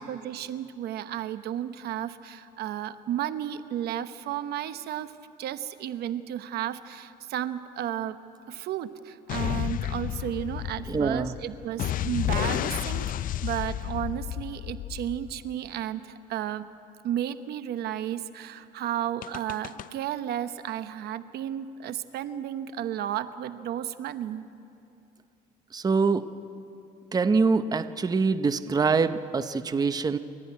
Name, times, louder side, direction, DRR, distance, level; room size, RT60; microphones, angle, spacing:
voice 1, 0.0-5.1 5.4-8.2 8.5-16.6 17.0-24.5, right 11 dB, 70° right, 11 dB, 1.0 m, -33 dB
sound 1, 9.3-15.7 19.2-19.9, left 12 dB, 55° left, 0.5 m, -31 dB
voice 2, 10.9-11.4 25.7-26.3 27.1-30.2, right 4 dB, 20° right, 11 dB, 0.7 m, -24 dB
28.5 x 13.5 x 9.4 m, 2.6 s
cardioid pair, 110°, 17 cm